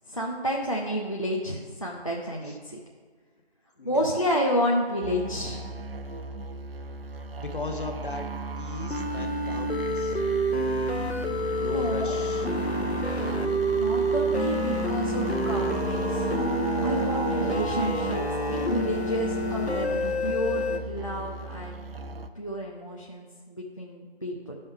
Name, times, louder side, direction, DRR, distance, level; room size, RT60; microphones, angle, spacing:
voice 1, 0.1-2.8 3.8-5.6 11.6-12.2 13.7-16.3 16.8-18.2 18.5-21.9 22.4-24.5, equal, 30° left, -2 dB, 0.5 m, -30 dB
voice 2, 3.8-4.2 7.2-8.3 8.6-10.2 11.6-12.5, left 2 dB, 50° left, 4 dB, 1.0 m, -37 dB
sound 1, 5.0-22.3, right 3 dB, 60° right, 0.6 m, -34 dB
sound 2, 8.9-20.8, equal, 80° left, 1.0 m, -28 dB
11.0 x 5.4 x 3.3 m, 1.6 s
figure-of-eight pair, 165°, 32 cm